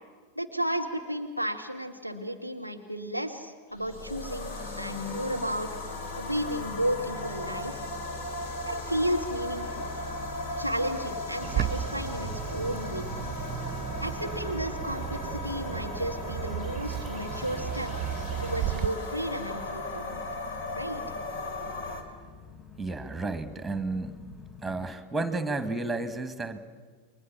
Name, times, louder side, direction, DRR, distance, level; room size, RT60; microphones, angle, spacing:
voice 1, 0.4-5.7 6.2-7.8 8.7-9.8 10.6-13.0 14.0-17.9 18.4-20.2 20.7-21.0, equal, 90° left, 5 dB, 1.7 m, -33 dB
sound 1, 3.7-22.0, left 2 dB, 55° left, 3.3 m, -37 dB
sound 2, 6.4-25.0, left 4 dB, 20° left, 1.1 m, -47 dB
Bird, 11.4-18.9, right 12 dB, 30° right, 0.8 m, -34 dB
voice 2, 22.8-24.2 24.6-26.6, right 3 dB, 5° right, 12 dB, 1.7 m, -32 dB
29.5 x 22.5 x 7.3 m, 1.5 s
figure-of-eight pair, 90°, 0 cm